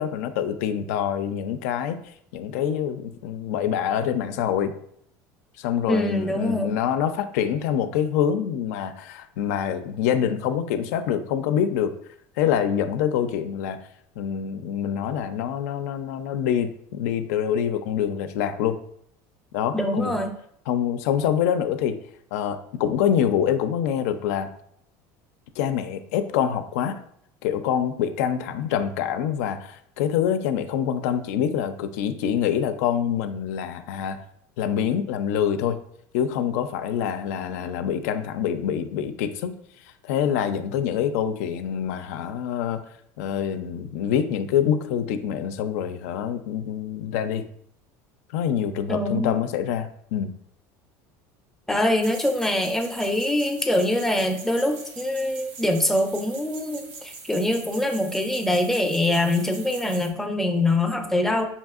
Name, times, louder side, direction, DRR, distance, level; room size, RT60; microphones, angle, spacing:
voice 1, 0.0-2.0 2.3-4.7 5.6-11.9 12.4-13.8 14.2-18.8 19.5-20.2 20.7-22.0 22.3-24.5 25.6-27.0 27.4-34.2 34.6-35.8 36.1-39.6 40.0-42.8 43.2-47.4 48.3-50.3, left 9 dB, 85° left, 10 dB, 0.4 m, -25 dB
voice 2, 5.9-6.7 19.7-20.3 48.9-49.4 51.7-61.4, left 1 dB, 5° left, 4 dB, 0.4 m, -24 dB
sound 1, 52.0-60.1, right 4 dB, 85° right, 0.8 m, -42 dB
5.4 x 2.7 x 2.4 m, 0.69 s
cardioid pair, 145°, 8 cm